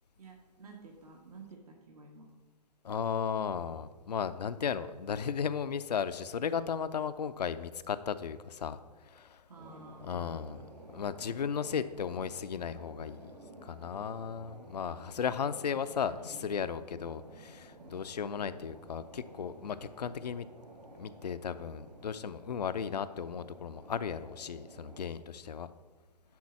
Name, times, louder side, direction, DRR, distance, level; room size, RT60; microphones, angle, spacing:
voice 1, 0.2-2.3 9.5-10.6 15.5-18.0, right 2 dB, 60° right, 1 dB, 1.4 m, -53 dB
voice 2, 2.8-9.4 10.0-10.6 10.9-13.3 13.6-20.5 20.9-25.7, left 7 dB, 70° left, 12 dB, 0.5 m, -35 dB
sound 1, 9.6-25.1, right 1 dB, 80° right, 3.1 m, -53 dB
10.5 x 3.9 x 7.2 m, 1.3 s
figure-of-eight pair, 125°, 21 cm